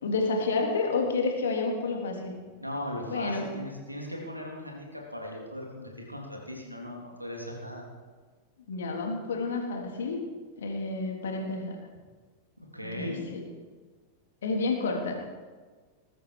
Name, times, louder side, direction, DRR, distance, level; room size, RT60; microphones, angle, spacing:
voice 1, 0.0-2.4 3.1-3.5 8.7-10.2 10.6-11.8 12.8-13.4 14.4-15.1, left 3 dB, 65° left, 1 dB, 3.4 m, -29 dB
voice 2, 2.6-7.9 12.6-13.2, left 1 dB, 90° right, 0 dB, 3.3 m, -38 dB
21.0 x 13.0 x 4.9 m, 1.4 s
figure-of-eight pair, 90°, 0 cm